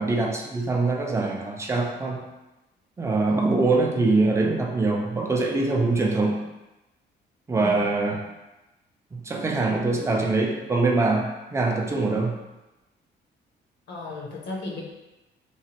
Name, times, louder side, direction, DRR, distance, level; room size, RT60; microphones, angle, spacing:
voice 1, 0.0-2.2 3.0-6.5 7.5-8.3 9.1-12.4, right 3 dB, 15° right, 0 dB, 0.5 m, -23 dB
voice 2, 13.9-14.8, left 2 dB, 65° left, -1 dB, 0.7 m, -34 dB
3.1 x 2.1 x 2.8 m, 1.0 s
cardioid pair, 90°, 20 cm